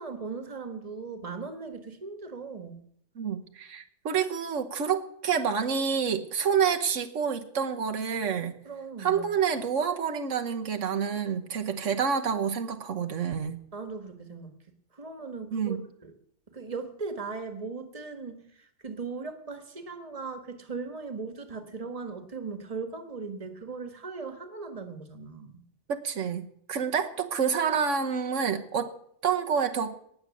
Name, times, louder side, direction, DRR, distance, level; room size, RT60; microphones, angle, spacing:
voice 1, 0.0-2.8 8.6-9.3 13.7-14.5 14.9-16.1 16.5-25.6, right 4 dB, 30° right, 8 dB, 1.6 m, -38 dB
voice 2, 3.2-8.6 9.0-13.6 15.5-15.8 25.9-28.9 29.2-29.9, right 7 dB, 85° right, 6 dB, 1.4 m, -28 dB
18.5 x 7.0 x 8.3 m, 0.69 s
omnidirectional pair, 1.2 m